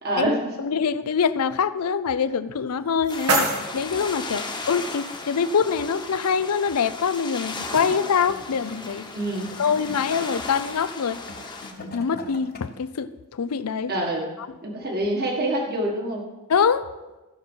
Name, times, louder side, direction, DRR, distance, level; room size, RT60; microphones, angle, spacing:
voice 1, 0.0-0.5 9.1-9.5 13.9-14.3 14.6-16.3, right 1 dB, 45° right, 0 dB, 1.7 m, -26 dB
voice 2, 0.6-9.1 9.6-11.2 11.9-13.9 16.5-16.8, left 6 dB, 85° left, 14 dB, 0.5 m, -24 dB
sound 1, 2.5-4.5, right 2 dB, 90° right, 2.1 m, -27 dB
sound 2, 3.1-11.7, left 3 dB, 20° left, 1.1 m, -36 dB
Gurgling / Toilet flush, 8.0-12.9 13.8-13.9, left 2 dB, 45° left, 1.1 m, -43 dB
15.0 x 6.0 x 5.5 m, 1.1 s
head